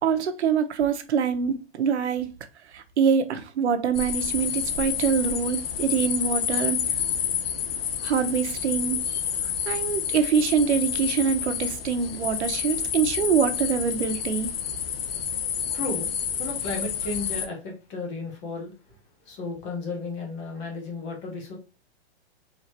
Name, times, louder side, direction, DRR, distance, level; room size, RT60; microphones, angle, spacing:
voice 1, 0.0-2.3 2.7-6.8 8.0-9.2 9.7-14.5, right 7 dB, 85° right, 0.9 m, -24 dB
sound 1, 3.9-17.5, left 8 dB, 60° left, 0.8 m, -29 dB
voice 2, 15.7-16.1 16.4-18.7 19.2-21.6, left 3 dB, 20° left, 0.9 m, -33 dB
4.6 x 3.0 x 2.9 m
hypercardioid pair, 170°, 33 cm